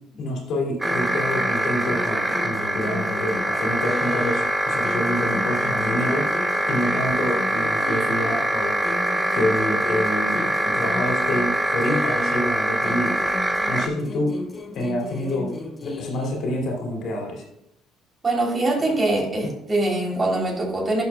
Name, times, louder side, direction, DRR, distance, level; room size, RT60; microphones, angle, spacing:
voice 1, 0.2-6.3 6.7-8.8 9.3-13.1 13.7-14.4 14.7-15.5 15.8-17.4, left 1 dB, 60° left, 0 dB, 2.4 m, -27 dB
sound 1, 0.8-4.5 4.8-8.4 8.8-12.5 12.8-16.4, left 2 dB, 30° left, 1.1 m, -35 dB
sound 2, 0.8-13.9, right 1 dB, 15° right, 0.8 m, -24 dB
voice 2, 18.2-21.0, right 2 dB, 30° right, -1 dB, 3.2 m, -23 dB
11.5 x 6.2 x 2.3 m, 0.81 s
hypercardioid pair, 60°, 0 cm